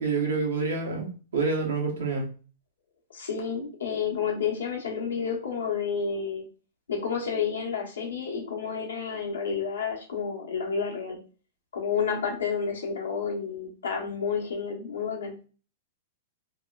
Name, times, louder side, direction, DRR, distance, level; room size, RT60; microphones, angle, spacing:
voice 1, 0.0-2.3, right 4 dB, 80° right, 0 dB, 0.9 m, -27 dB
voice 2, 3.1-6.5 6.9-11.2 11.7-15.3, left 6 dB, 85° left, -1 dB, 0.9 m, -30 dB
2.8 x 2.1 x 2.3 m, 0.37 s
hypercardioid pair, 110°, 0 cm